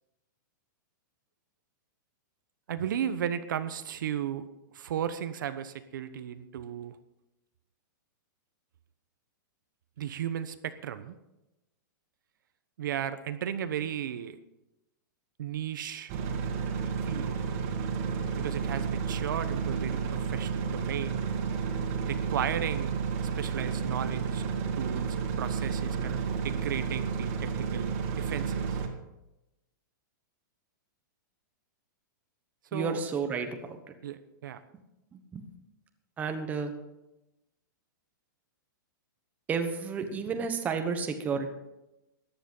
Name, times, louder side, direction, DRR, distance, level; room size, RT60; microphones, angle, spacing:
voice 1, 2.7-4.5 4.7-7.0 10.0-11.1 12.8-14.4 15.4-16.1 17.0-17.3 18.4-21.2 22.0-22.9 23.4-28.8 32.7-33.0 34.0-34.6, right 9 dB, 70° right, 11 dB, 1.0 m, -35 dB
sound 1, 16.1-28.9, right 6 dB, 35° right, 2.0 m, -31 dB
voice 2, 32.7-33.8 35.1-35.4 36.2-36.7 39.5-41.5, right 5 dB, 15° right, 6 dB, 1.1 m, -31 dB
14.0 x 10.5 x 5.5 m, 0.95 s
hypercardioid pair, 160°, 11 cm